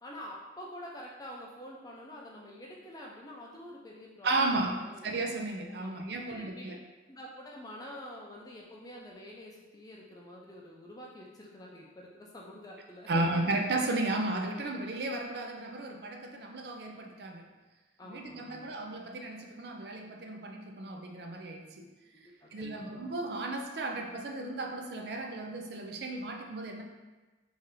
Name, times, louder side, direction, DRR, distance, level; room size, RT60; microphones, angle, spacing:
voice 1, 0.0-5.1 5.8-5.9 6.2-6.7 7.1-13.2 18.0-18.7 22.1-23.0, left 1 dB, 20° left, -3 dB, 0.5 m, -47 dB
voice 2, 4.2-6.8 13.1-17.5 18.0-21.9 22.5-26.8, right 2 dB, 60° right, 3 dB, 0.4 m, -34 dB
3.3 x 2.7 x 3.7 m, 1.2 s
head